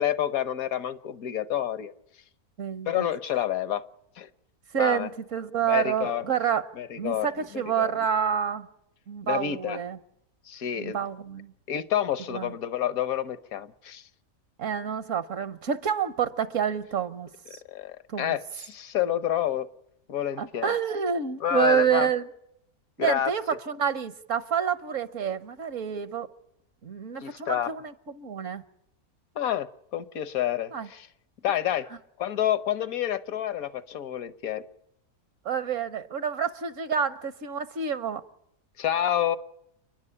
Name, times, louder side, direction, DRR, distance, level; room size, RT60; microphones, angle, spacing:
voice 1, 0.0-1.9 2.9-3.8 4.2-4.3 4.8-5.1 5.7-6.2 6.8-7.3 7.5-7.9 9.2-9.8 10.4-11.0 11.7-14.1 17.7-19.7 20.1-20.7 21.4-22.1 23.0-23.3 27.2-27.7 29.3-31.1 31.4-31.9 32.2-34.6 38.8-39.4, left 11 dB, 75° left, 1.5 m, -28 dB
voice 2, 2.6-3.1 4.7-6.7 7.0-8.7 9.1-10.0 10.8-11.5 12.3-12.5 14.6-17.6 18.1-18.4 20.4-22.3 23.0-26.3 26.8-28.6 30.7-30.9 35.4-38.2, right 7 dB, 65° right, 1.3 m, -28 dB
29.5 x 10.5 x 9.8 m
omnidirectional pair, 1.5 m